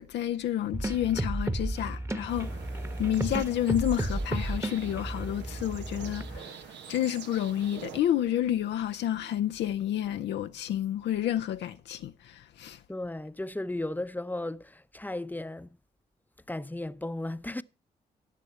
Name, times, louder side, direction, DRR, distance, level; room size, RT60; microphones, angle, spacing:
voice 1, 0.0-2.5 3.0-6.6 6.9-12.8, left 11 dB, 85° left, 0.5 m, -30 dB
sound 1, 0.7-6.4, right 1 dB, 15° right, 1.2 m, -33 dB
sound 2, 2.3-8.0, right 8 dB, 85° right, 1.1 m, -46 dB
voice 2, 12.9-15.8 16.5-17.6, left 1 dB, 10° left, 0.7 m, -35 dB
16.0 x 6.8 x 4.4 m
supercardioid pair, 50°, 18 cm